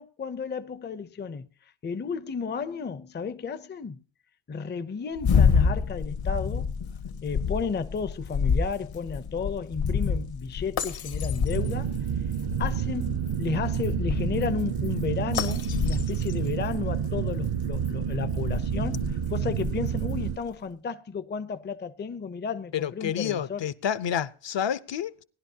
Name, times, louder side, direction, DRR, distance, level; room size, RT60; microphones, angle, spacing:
voice 1, 0.0-1.5 1.8-4.0 4.5-6.9 7.2-12.0 12.6-23.6, left 5 dB, 20° left, 0.5 m, -33 dB
sound 1, 5.2-20.3, left 5 dB, 80° left, 1.7 m, -29 dB
sound 2, 11.5-20.4, right 9 dB, 55° right, 0.6 m, -29 dB
voice 2, 22.7-25.2, left 9 dB, 60° left, 0.7 m, -29 dB
19.0 x 11.0 x 2.7 m
cardioid pair, 100°, 50 cm